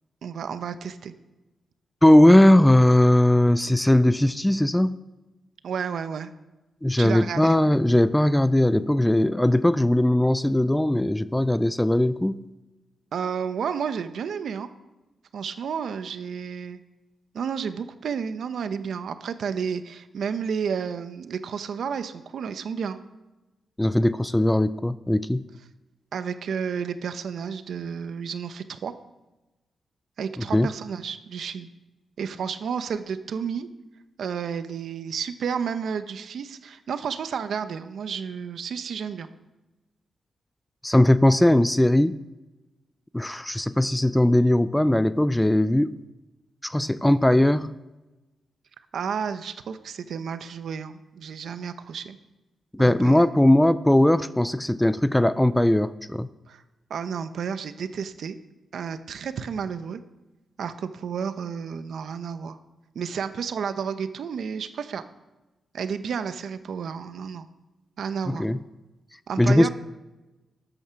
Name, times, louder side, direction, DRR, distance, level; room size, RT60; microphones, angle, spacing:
voice 1, 0.2-1.1 5.6-6.3 7.0-7.5 13.1-14.7 15.3-16.8 17.3-23.0 26.1-28.9 30.2-31.7 32.2-33.7 34.2-39.3 48.9-52.2 52.8-53.2 56.5-56.6 56.9-58.4 58.7-60.0 60.6-62.6 62.9-65.0 65.7-67.5 68.0-68.5 69.3-69.7, right 6 dB, 65° right, 11 dB, 0.8 m, -31 dB
voice 2, 2.0-5.0 6.8-12.4 23.8-25.4 30.5-30.7 40.8-42.2 43.1-46.0 46.6-47.7 52.7-56.3 68.3-68.6 69.4-69.7, left 1 dB, 5° left, 15 dB, 0.3 m, -19 dB
13.0 x 9.0 x 5.8 m, 1.1 s
wide cardioid pair, 155°, 0 cm